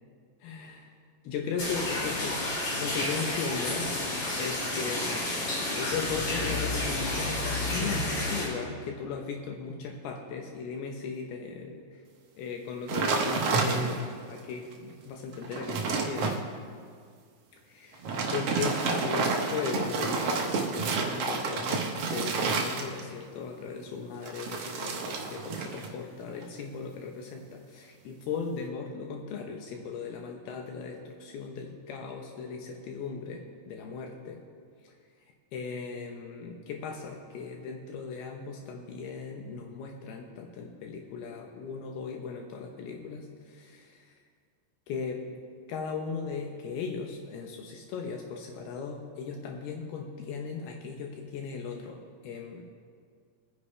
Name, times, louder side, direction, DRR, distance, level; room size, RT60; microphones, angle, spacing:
voice 1, 0.4-0.9 1.2-3.9 4.4-11.8 12.4-16.4 17.5-18.0 18.3-34.4 34.8-34.9 35.5-44.1 44.9-45.2 45.7-52.6, left 5 dB, 75° left, 2 dB, 2.8 m, -37 dB
sound 1, 1.6-8.4, left 2 dB, 55° left, 5.6 m, -30 dB
sound 2, 12.9-14.2 14.7-14.8 15.2-16.4 17.9-23.2 24.2-25.9 26.2-26.6, right 4 dB, 85° right, 1.3 m, -30 dB
24.0 x 9.9 x 3.3 m, 2.1 s
omnidirectional pair, 4.7 m